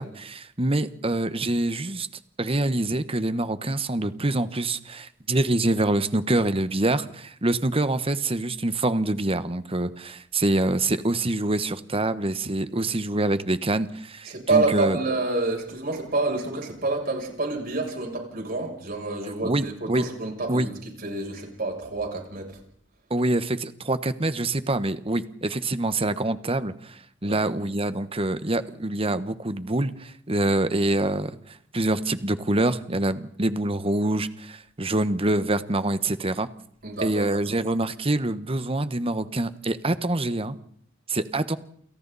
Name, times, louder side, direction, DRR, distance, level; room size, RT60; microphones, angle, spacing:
voice 1, 0.0-2.1 2.4-15.0 19.4-20.0 20.5-20.7 23.1-36.5 37.0-40.6 41.1-41.6, right 2 dB, 30° right, 12 dB, 1.3 m, -25 dB
voice 2, 14.2-20.7 21.0-22.5 27.2-27.4 36.8-37.6, right 3 dB, 50° right, 1 dB, 7.8 m, -28 dB
29.0 x 28.5 x 4.2 m, 0.66 s
head